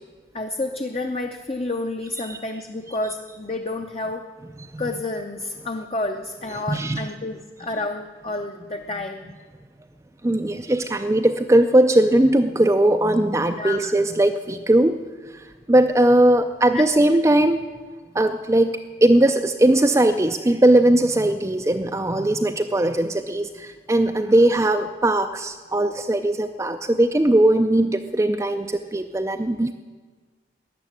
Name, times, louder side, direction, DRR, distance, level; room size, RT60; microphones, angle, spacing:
voice 1, 0.3-4.3 4.8-9.4 13.4-13.9 16.7-16.9, left 2 dB, 35° left, 4 dB, 0.6 m, -30 dB
voice 2, 6.7-7.1 10.2-15.0 15.7-17.6 18.1-29.7, right 1 dB, 15° right, 6 dB, 0.4 m, -19 dB
14.0 x 9.6 x 9.2 m, 1.4 s
head